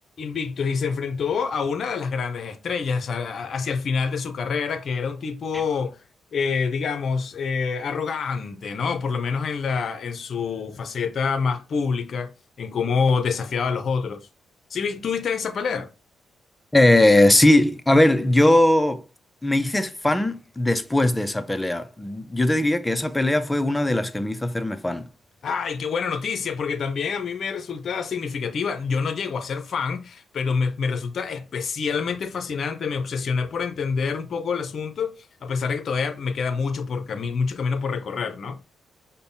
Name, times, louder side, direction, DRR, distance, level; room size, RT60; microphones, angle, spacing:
voice 1, 0.2-6.0 6.3-12.3 12.6-14.2 14.7-15.9 25.4-35.2 35.4-38.6, left 5 dB, 60° left, 0.6 m, -26 dB
voice 2, 16.7-19.0 19.4-25.0, left 1 dB, 15° left, 0.5 m, -19 dB
5.2 x 2.1 x 2.7 m
supercardioid pair, 60°, 0 cm